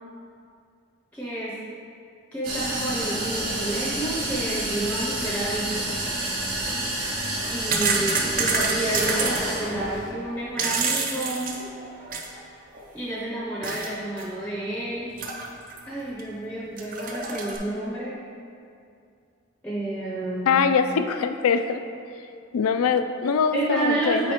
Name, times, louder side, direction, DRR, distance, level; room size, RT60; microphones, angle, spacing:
voice 1, 1.1-1.6 2.3-6.0 7.5-11.5 12.9-15.2 15.9-18.2 19.6-20.6 23.5-24.3, right 1 dB, 5° left, -6 dB, 0.6 m, -30 dB
sound 1, 2.4-10.1, right 1 dB, 85° right, 1.3 m, -29 dB
sound 2, 6.5-6.7 7.4-9.4 10.3-12.4 12.7-12.8 13.6-13.9 14.2-14.3 15.2-15.8 16.2-16.3 16.8-17.6, right 4 dB, 40° right, 0.5 m, -27 dB
voice 2, 20.5-21.8 22.5-24.2, left 6 dB, 90° left, 8 dB, 0.4 m, -22 dB
8.7 x 4.1 x 3.0 m, 2.4 s
head